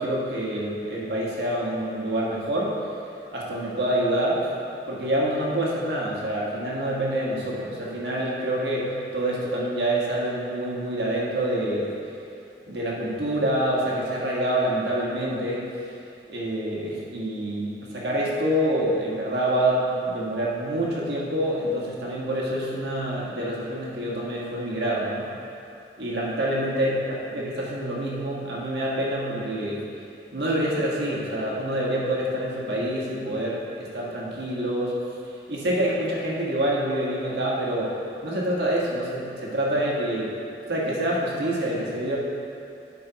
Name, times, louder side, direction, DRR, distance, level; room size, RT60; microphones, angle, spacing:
voice 1, 0.0-2.8 3.3-4.5 4.9-11.9 12.7-15.7 16.3-25.3 26.0-29.8 30.3-34.9 35.5-37.9 38.2-40.3 40.7-42.2, right 1 dB, 70° right, -5 dB, 1.5 m, -26 dB
11.0 x 5.5 x 2.9 m, 2.7 s
head